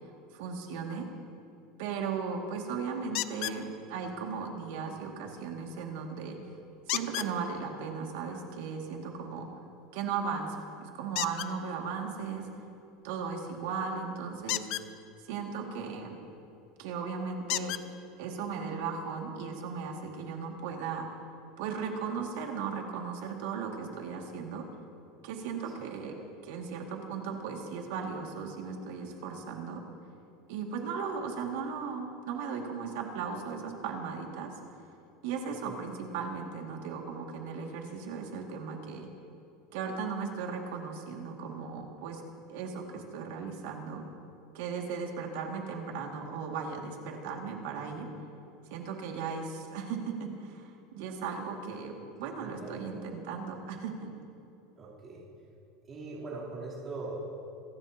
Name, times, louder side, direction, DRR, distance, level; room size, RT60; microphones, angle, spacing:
voice 1, 0.3-1.1 1.8-6.4 6.9-9.5 9.9-12.5 13.0-14.7 15.3-16.2 16.8-17.8 18.2-21.1 21.6-24.7 25.2-26.1 26.4-29.8 30.5-34.5 35.2-39.1 39.7-42.2 42.5-44.0 44.5-48.1 48.7-54.1, right 5 dB, 75° right, 1 dB, 2.1 m, -37 dB
sound 1, 3.1-3.6 6.9-7.3 11.1-11.5 14.4-14.9 16.5-16.6 17.5-17.8 18.8-18.9 19.4-19.5, left 16 dB, 50° left, 0.4 m, -33 dB
voice 2, 52.4-52.7 54.8-55.2 55.9-57.2, right 3 dB, 30° right, -9 dB, 3.3 m, -41 dB
26.0 x 12.5 x 2.9 m, 2.6 s
supercardioid pair, 150°, 0 cm